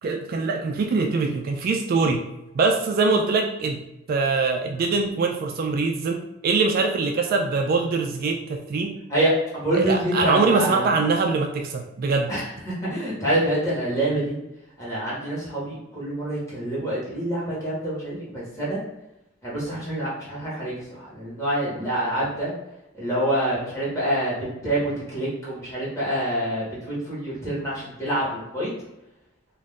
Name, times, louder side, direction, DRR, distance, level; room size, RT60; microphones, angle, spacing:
voice 1, 0.0-2.2 2.5-3.8 4.1-9.0 9.7-12.3, right 4 dB, 50° right, 3 dB, 0.3 m, -23 dB
voice 2, 9.1-10.9 12.3-14.4 14.8-18.8 19.4-22.5 23.0-24.4 24.6-28.7, right 1 dB, 15° left, -8 dB, 1.3 m, -26 dB
2.5 x 2.4 x 3.6 m, 0.92 s
head